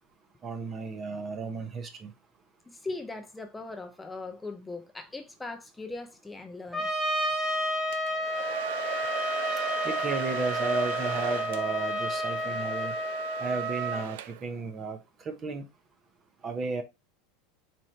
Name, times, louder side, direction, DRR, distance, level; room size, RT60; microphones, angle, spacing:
voice 1, 0.4-2.1 9.8-12.9 13.4-15.0 15.2-15.7 16.4-16.8, right 4 dB, 35° right, 0.8 m, -33 dB
voice 2, 2.7-6.9 9.5-9.6, left 3 dB, 10° left, 0.5 m, -39 dB
Trumpet, 6.7-14.1, equal, 15° right, 1.3 m, -31 dB
Domestic sounds home sounds, 7.9-14.6, right 12 dB, 75° right, 0.4 m, -38 dB
4.4 x 2.5 x 3.2 m
hypercardioid pair, 105°, 0 cm